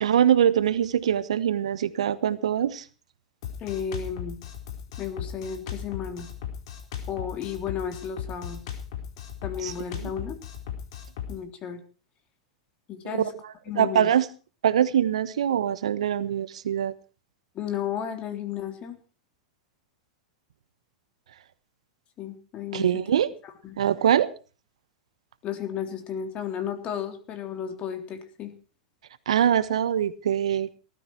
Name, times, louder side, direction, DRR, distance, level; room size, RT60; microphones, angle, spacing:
voice 1, 0.0-2.8 9.6-9.7 10.0-10.1 13.7-14.3 14.6-16.9 22.7-23.3 23.8-24.3 29.3-30.7, right 9 dB, 75° right, 15 dB, 1.2 m, -23 dB
Drum kit, 3.4-11.4, left 8 dB, 60° left, 4.3 m, -37 dB
voice 2, 3.6-4.4 5.0-6.3 7.1-8.6 9.4-10.4 11.3-11.8 12.9-13.3 13.7-14.1 17.6-19.0 22.2-23.0 23.4-23.8 25.4-28.5, left 8 dB, 35° left, 7 dB, 3.5 m, -33 dB
19.0 x 13.0 x 4.6 m, 0.36 s
hypercardioid pair, 100°, 3 cm